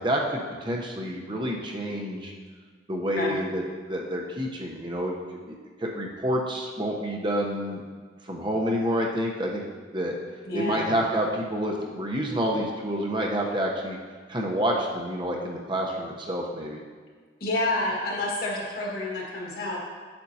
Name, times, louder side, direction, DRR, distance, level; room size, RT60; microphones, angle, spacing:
voice 1, 0.0-2.3 2.9-5.2 5.5-7.8 8.2-9.6 9.9-10.1 10.5-14.0 14.3-16.8, equal, 25° right, -1 dB, 0.9 m, -28 dB
voice 2, 10.4-10.9 17.4-19.8, left 2 dB, 50° left, -4 dB, 1.8 m, -29 dB
8.8 x 8.0 x 2.8 m, 1.5 s
head